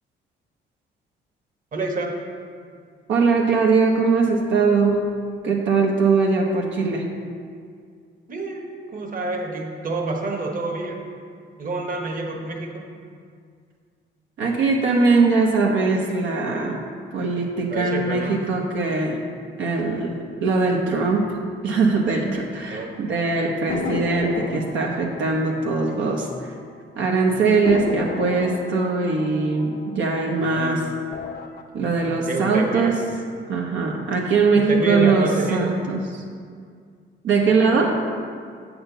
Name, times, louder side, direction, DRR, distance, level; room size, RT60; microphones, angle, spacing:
voice 1, 1.7-2.2 8.3-11.0 11.6-12.8 17.7-18.4 22.7-23.0 30.4-30.9 32.3-33.0 34.5-35.8 37.5-38.0, right 2 dB, 45° right, 1 dB, 1.2 m, -28 dB
voice 2, 3.1-5.0 5.4-7.1 14.4-16.8 17.1-19.2 19.6-20.1 20.4-21.3 21.6-26.6 27.0-30.8 31.7-32.9 33.5-36.0 37.2-37.9, right 4 dB, 75° right, -2 dB, 0.9 m, -21 dB
sound 1, 23.7-26.7 27.0-27.1 27.6-30.6 31.0-31.6, left 4 dB, 50° left, 0.7 m, -33 dB
8.0 x 4.3 x 6.7 m, 2.1 s
cardioid pair, 90°, 20 cm